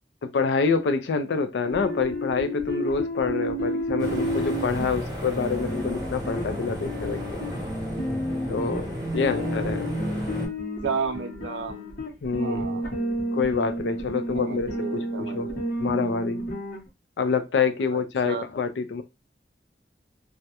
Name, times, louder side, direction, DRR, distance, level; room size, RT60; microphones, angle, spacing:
voice 1, 0.2-7.4 8.5-8.9 9.1-9.9 12.2-12.8 13.3-15.5 15.8-16.4 17.2-19.0, left 5 dB, 80° left, 0.4 m, -27 dB
sound 1, 1.6-16.8, equal, 55° left, 0.9 m, -31 dB
sound 2, 4.0-10.5, equal, 20° right, 0.7 m, -33 dB
voice 2, 9.3-9.8 10.8-11.9 12.4-13.0 14.3-15.6 17.9-18.5, right 5 dB, 80° right, 0.5 m, -33 dB
2.3 x 2.1 x 2.8 m
head